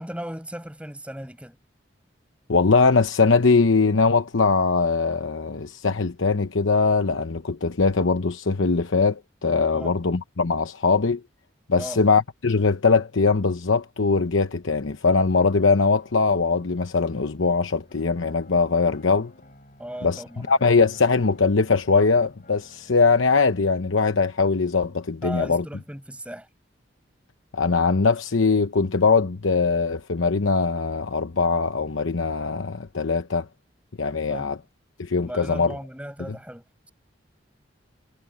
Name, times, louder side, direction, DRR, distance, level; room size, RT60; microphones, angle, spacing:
voice 1, 0.0-1.6 9.7-10.0 11.8-12.0 19.8-20.5 25.2-26.5 34.3-34.5 35.2-36.9, equal, 5° right, 6.9 m, -36 dB
voice 2, 2.5-11.2 11.7-19.3 20.0-25.6 27.5-33.5 34.0-34.6 35.0-35.7, left 4 dB, 85° left, 0.9 m, -21 dB
sound 1, 15.4-23.4, left 1 dB, 45° left, 7.5 m, -53 dB
head